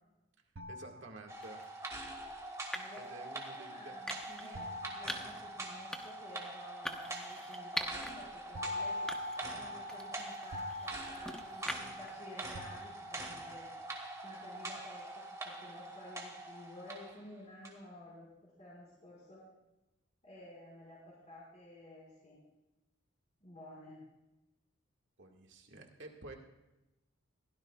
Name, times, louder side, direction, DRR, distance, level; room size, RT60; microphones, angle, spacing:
sound 1, 0.6-1.8 4.5-6.2 8.5-12.1 12.5-13.5, left 1 dB, 85° right, 0.8 m, -44 dB
voice 1, 0.7-1.6 3.0-4.0 4.4-4.7 25.2-26.3, right 2 dB, 65° right, 2 dB, 1.8 m, -51 dB
sound 2, 1.3-17.2 17.6-17.7, right 2 dB, 15° right, 2.2 m, -44 dB
sound 3, 1.4-1.7 2.7-3.1 4.1-4.5 5.1-5.4 5.9-6.3 6.9-8.1 8.5-8.6 9.1-9.5 9.9-12.1, equal, 5° left, 0.9 m, -42 dB
voice 2, 2.7-9.1 9.5-13.7 14.2-15.0 15.4-19.4 20.2-22.4 23.4-24.0, left 1 dB, 35° left, -7 dB, 4.9 m, -53 dB
22.5 x 16.5 x 2.4 m, 0.97 s
head